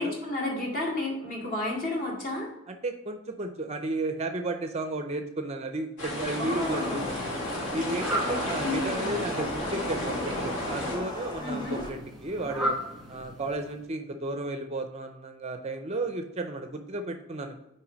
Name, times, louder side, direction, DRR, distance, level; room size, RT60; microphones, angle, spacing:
voice 1, 0.0-2.5 6.4-7.1 8.3-9.2 11.4-11.9, left 2 dB, 40° left, -2 dB, 2.1 m, -32 dB
voice 2, 2.7-7.3 7.7-12.7 13.1-17.5, right 2 dB, 30° right, 6 dB, 0.5 m, -33 dB
sound 1, 6.0-11.0, left 1 dB, 60° left, 1.7 m, -33 dB
sound 2, 6.5-11.9, left 2 dB, 20° left, 2.1 m, -37 dB
Fowl, 6.5-13.9, right 1 dB, ahead, 1.6 m, -38 dB
5.9 x 4.6 x 5.0 m, 0.91 s
head